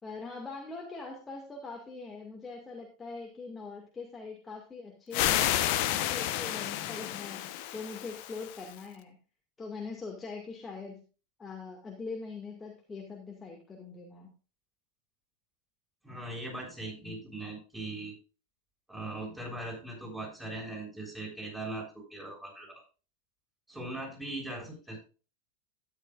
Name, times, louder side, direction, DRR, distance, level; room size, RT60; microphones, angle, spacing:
voice 1, 0.0-5.4 5.9-9.2 9.6-11.0 11.4-14.3, left 4 dB, 15° left, 0 dB, 2.0 m, -42 dB
sound 1, 5.1-8.8, left 13 dB, 50° left, 0.9 m, -31 dB
voice 2, 16.0-18.2 18.9-22.8 23.7-25.0, right 2 dB, 5° right, -2 dB, 6.8 m, -40 dB
12.5 x 10.0 x 2.5 m, 0.35 s
figure-of-eight pair, 90°, 0 cm